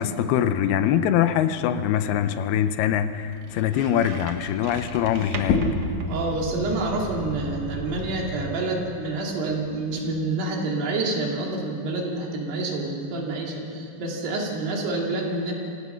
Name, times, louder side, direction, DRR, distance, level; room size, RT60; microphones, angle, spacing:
voice 1, 0.0-5.6, left 10 dB, 80° left, 11 dB, 2.6 m, -23 dB
sound 1, 0.7-7.0, right 4 dB, 55° right, 1.9 m, -40 dB
sound 2, 3.1-8.4, right 1 dB, ahead, 2.5 m, -38 dB
sound 3, 5.3-10.5, left 4 dB, 55° left, 2.6 m, -32 dB
voice 2, 6.1-15.5, right 2 dB, 85° right, -1 dB, 4.9 m, -28 dB
26.5 x 18.0 x 5.8 m, 2.6 s
omnidirectional pair, 4.6 m